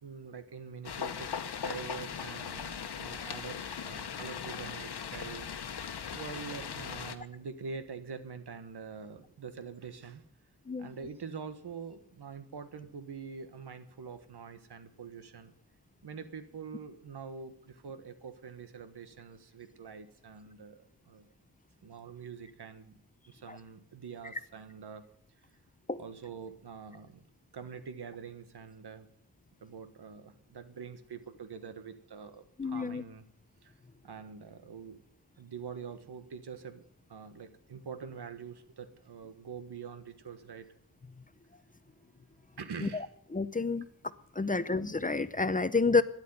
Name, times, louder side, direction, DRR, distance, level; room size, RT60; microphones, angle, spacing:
voice 1, 0.0-5.9 6.1-10.2 10.8-15.5 16.0-20.8 21.0-21.3 21.8-22.9 23.3-25.0 26.0-27.2 27.5-29.1 29.6-33.2 33.6-33.7 34.0-35.0 35.4-36.8 37.1-40.7 42.6-43.1, right 6 dB, 90° right, 10 dB, 1.5 m, -45 dB
sound 1, 0.8-7.2, left 7 dB, 85° left, 1.1 m, -39 dB
voice 2, 32.6-33.0 42.8-43.1 43.3-43.8 44.3-46.0, left 4 dB, 20° left, 13 dB, 0.6 m, -29 dB
13.0 x 10.5 x 9.7 m, 0.72 s
wide cardioid pair, 130°, 39 cm